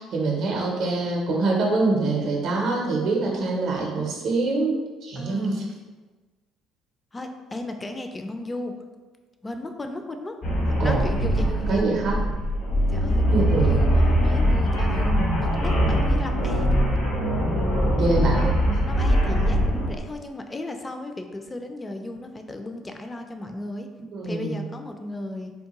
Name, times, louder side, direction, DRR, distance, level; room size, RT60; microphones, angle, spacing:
voice 1, 0.0-5.6 10.8-11.0 11.7-12.2 13.3-13.7 18.0-18.5 24.1-24.6, right 3 dB, 60° right, -1 dB, 0.6 m, -24 dB
voice 2, 5.2-5.7 7.1-8.7 9.4-10.3 10.7-11.8 12.9-16.8 18.9-23.9 24.2-25.5, left 2 dB, 20° left, 5 dB, 0.4 m, -35 dB
sound 1, 10.4-20.0, equal, 65° left, 1.1 m, -22 dB
3.5 x 2.2 x 2.9 m, 1.3 s
hypercardioid pair, 55°, 0 cm